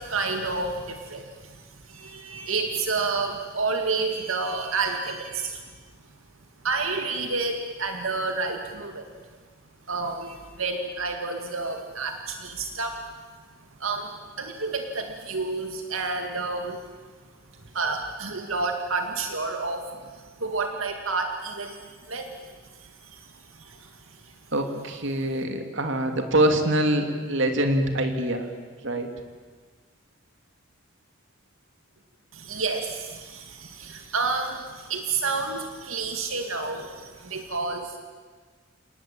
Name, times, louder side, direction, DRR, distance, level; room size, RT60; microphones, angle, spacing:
voice 1, 0.0-1.6 1.9-5.6 6.6-9.0 9.9-13.0 13.8-16.8 17.7-19.8 20.4-22.5 22.8-23.3 23.6-23.9 32.3-38.0, right 4 dB, 85° right, 4 dB, 2.2 m, -30 dB
voice 2, 24.5-28.5 28.8-29.1, right 1 dB, 65° right, 5 dB, 2.7 m, -24 dB
29.5 x 19.0 x 8.8 m, 1.5 s
head